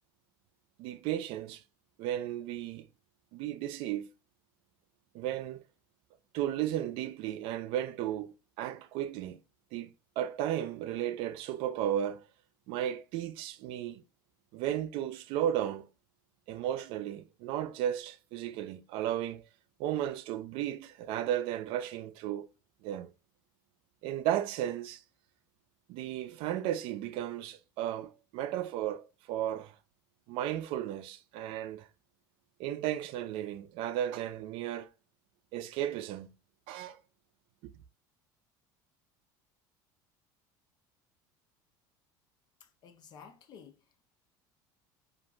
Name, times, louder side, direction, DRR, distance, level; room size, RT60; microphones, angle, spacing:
voice 1, 0.8-1.6 2.0-2.9 3.3-4.1 5.1-5.6 6.3-9.4 9.7-12.2 12.7-14.0 14.5-15.9 16.5-19.5 19.8-22.5 22.8-23.1 24.0-25.0 25.9-29.8 30.3-31.9 32.6-34.9 35.5-36.3 36.7-37.0 37.6-37.7, right 11 dB, 60° right, 0.4 m, -34 dB
voice 2, 42.6-44.1, left 7 dB, 45° left, 0.5 m, -54 dB
2.5 x 2.3 x 2.9 m
cardioid pair, 140°, 10 cm